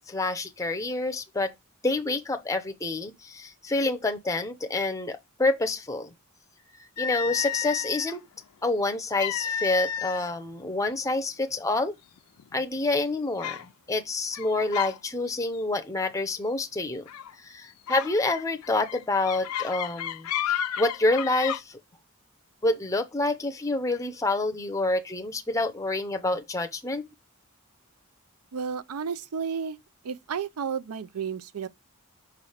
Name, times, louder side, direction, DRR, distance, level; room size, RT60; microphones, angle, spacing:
voice 1, 0.1-1.5 1.8-6.1 7.0-8.2 8.6-12.0 12.5-17.1 17.4-20.3 20.8-21.8 22.6-27.1, left 2 dB, 15° left, 0.6 m, -27 dB
sound 1, 7.0-8.2 9.2-10.3 10.6-10.9 11.6-11.7 12.2-12.6 13.4-13.7 14.3-15.0 15.3-15.6 17.1-17.3 17.9-21.6, left 9 dB, 80° left, 0.4 m, -32 dB
voice 2, 28.5-29.8 30.0-31.7, right 6 dB, 90° right, 0.5 m, -32 dB
5.8 x 3.3 x 5.6 m
head